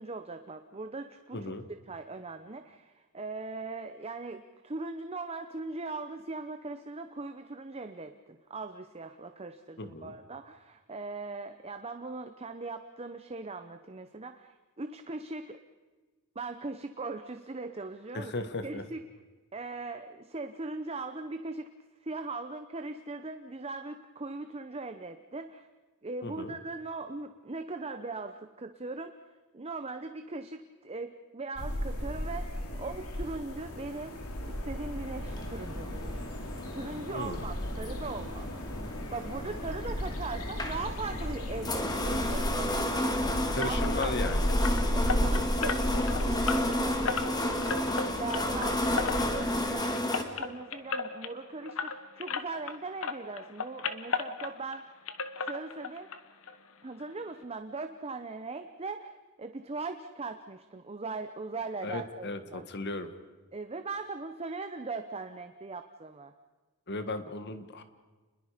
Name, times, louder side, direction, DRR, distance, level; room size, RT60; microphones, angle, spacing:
voice 1, 0.0-1.5 1.9-15.6 16.3-19.0 19.5-21.7 22.0-25.7 26.0-34.2 34.5-38.5 38.9-43.2 43.6-44.2 44.9-55.0 55.4-56.1 56.8-62.6 63.5-66.3, right 3 dB, 30° right, 8 dB, 0.8 m, -40 dB
voice 2, 1.3-1.6 9.8-10.2 18.1-18.8 26.2-26.5 37.1-37.4 43.5-44.5 61.8-63.1 66.9-67.8, left 2 dB, 50° left, 9 dB, 1.7 m, -36 dB
sound 1, 31.6-49.6, equal, 85° left, 2.8 m, -34 dB
sound 2, 35.3-50.2, left 1 dB, 20° left, 1.9 m, -33 dB
sound 3, 43.6-52.8 53.0-54.8 55.1-56.2 56.4-56.6 57.0-57.1 57.4-57.5, left 5 dB, 65° left, 1.2 m, -35 dB
28.5 x 21.5 x 5.1 m, 1.3 s
head